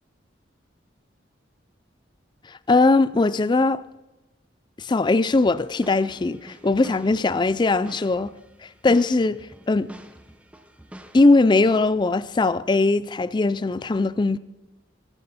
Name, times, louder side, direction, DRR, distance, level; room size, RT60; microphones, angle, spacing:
voice 1, 2.5-3.8 4.8-8.4 8.6-9.9 11.1-14.4, left 3 dB, 25° left, 0.4 m, -20 dB
sound 1, 5.1-11.2, equal, 5° right, 0.8 m, -46 dB
20.0 x 11.0 x 4.1 m
head